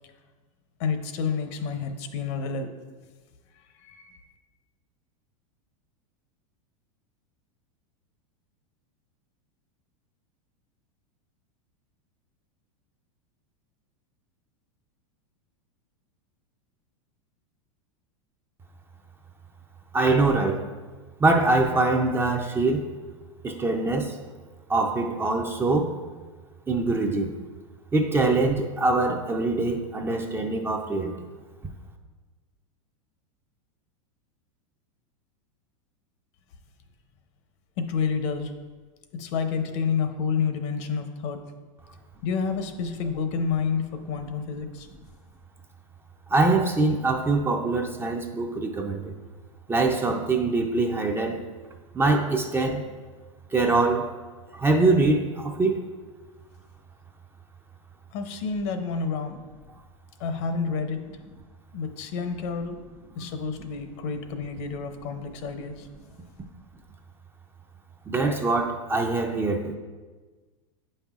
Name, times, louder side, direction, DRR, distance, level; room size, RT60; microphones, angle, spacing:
voice 1, 0.8-2.7 3.7-4.2 37.8-38.5 39.1-41.4 42.2-44.9 58.1-59.4 60.2-61.0 61.7-62.8 63.1-65.9, left 5 dB, 55° left, 7 dB, 0.7 m, -29 dB
voice 2, 19.9-20.6 21.2-22.9 23.4-24.2 24.7-25.9 26.7-27.3 27.9-31.1 46.3-49.1 49.7-51.4 51.9-52.8 53.5-54.1 54.5-55.8 68.1-69.7, right 3 dB, 15° right, 3 dB, 0.4 m, -23 dB
8.2 x 5.4 x 2.4 m, 1.4 s
hypercardioid pair, 120°, 18 cm